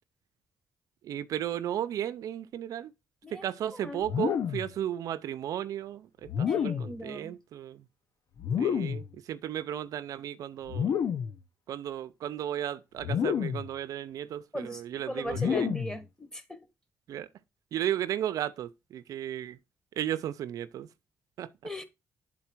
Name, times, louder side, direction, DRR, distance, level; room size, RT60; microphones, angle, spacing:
voice 1, 1.0-2.9 3.3-7.9 8.6-11.0 11.7-15.7 17.1-17.3 17.7-19.6 20.0-20.9 21.4-21.5, right 11 dB, 80° right, 0.5 m, -34 dB
sound 1, 4.0-4.7 6.3-7.0 8.4-9.1 10.7-11.4 13.0-13.7 15.3-16.0, left 8 dB, 70° left, 0.8 m, -29 dB
voice 2, 6.5-7.3 14.5-16.7 21.6-21.8, left 1 dB, 10° left, 1.7 m, -39 dB
9.3 x 4.0 x 4.4 m
cardioid pair, 90°, 6 cm